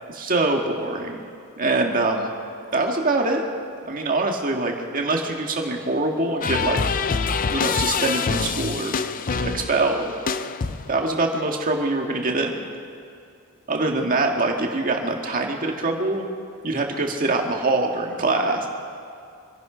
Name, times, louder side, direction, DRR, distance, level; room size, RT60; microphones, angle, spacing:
voice 1, 0.1-1.3 1.6-2.3 2.7-3.4 3.9-6.8 7.5-9.0 9.4-10.1 10.9-12.6 13.7-16.2 16.6-18.7, right 2 dB, 40° right, 2 dB, 1.8 m, -24 dB
sound 1, 6.4-11.1, left 5 dB, 40° left, 0.5 m, -25 dB
25.5 x 11.0 x 5.0 m, 2.5 s
head